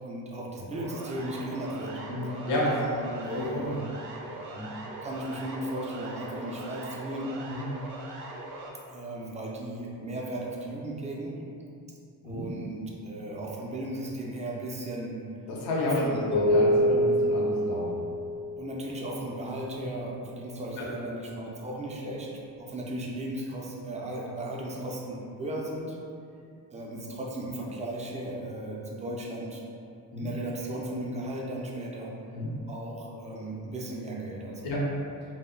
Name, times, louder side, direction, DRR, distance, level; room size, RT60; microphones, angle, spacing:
voice 1, 0.0-2.4 2.7-3.8 5.0-7.4 8.9-11.4 12.2-15.2 15.8-16.2 18.6-22.3 22.6-26.0 26.7-29.6 30.2-32.1 32.7-34.7, right 1 dB, 20° right, -3 dB, 0.4 m, -36 dB
Siren, 0.7-8.7, right 2 dB, 70° right, 0.5 m, -41 dB
voice 2, 2.1-2.7 3.3-3.7 4.5-4.7 7.5-7.6 12.2-12.4 15.5-18.0 20.8-20.9 30.1-30.3 32.3-32.5 34.6-34.8, left 1 dB, 85° left, -5 dB, 0.7 m, -30 dB
sound 1, 16.3-18.9, equal, 50° left, 0.5 m, -25 dB
2.2 x 2.0 x 3.6 m, 2.5 s
cardioid pair, 100°, 39 cm